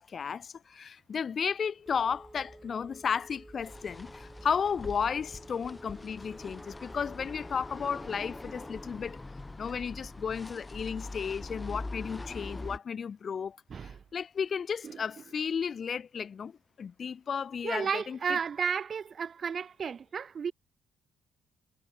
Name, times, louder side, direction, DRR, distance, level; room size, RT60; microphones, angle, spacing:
voice 1, 0.0-9.2 9.6-18.4, left 6 dB, 50° left, 0.5 m, -34 dB
Telephone, 1.9-8.9, right 1 dB, 10° right, 3.4 m, -52 dB
sound 1, 3.6-12.8, left 2 dB, 15° left, 1.5 m, -43 dB
voice 2, 13.7-14.0 14.8-15.0 17.6-20.5, right 6 dB, 45° right, 0.8 m, -33 dB
cardioid pair, 90°, 0 cm